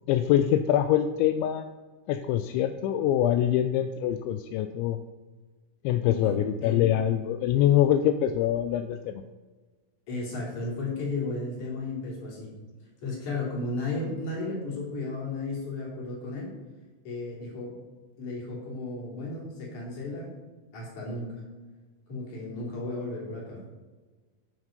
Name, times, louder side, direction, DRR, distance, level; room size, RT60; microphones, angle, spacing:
voice 1, 0.1-1.7 2.1-5.0 5.8-9.2, left 11 dB, 85° left, 9 dB, 2.8 m, -24 dB
voice 2, 6.1-6.8 10.1-12.5 13.0-16.5 17.0-17.8 18.2-20.3 20.7-21.4 22.1-23.6, left 2 dB, 45° left, -3 dB, 4.1 m, -34 dB
17.0 x 6.1 x 5.2 m, 1.3 s
omnidirectional pair, 5.2 m